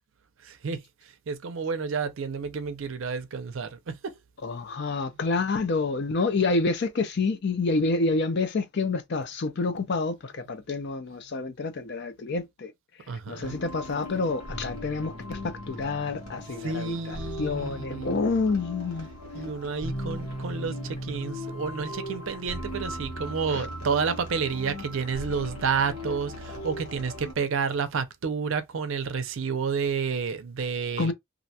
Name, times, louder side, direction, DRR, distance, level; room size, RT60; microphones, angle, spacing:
voice 1, 0.4-4.2 13.1-13.6 16.6-18.2 19.3-31.1, right 5 dB, 60° right, 0.5 m, -30 dB
voice 2, 4.4-12.7 13.3-19.1 23.5-23.7 31.0-31.1, left 3 dB, 50° left, 0.4 m, -28 dB
sound 1, 13.4-27.3, equal, 90° left, 1.1 m, -37 dB
2.5 x 2.2 x 2.7 m
head